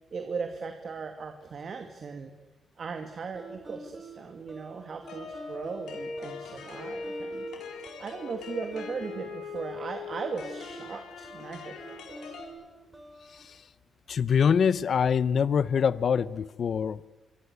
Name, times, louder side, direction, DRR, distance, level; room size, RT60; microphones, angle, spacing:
voice 1, 0.1-2.3 2.8-7.5 8.0-11.7, right 5 dB, 50° right, 2.3 m, -38 dB
sound 1, 3.3-13.4, right 2 dB, 10° right, 4.2 m, -48 dB
sound 2, 5.1-12.5, left 4 dB, 85° left, 4.9 m, -40 dB
voice 2, 14.1-17.1, left 7 dB, 55° left, 0.8 m, -25 dB
26.5 x 24.0 x 8.3 m
cardioid pair, 100°, 0 cm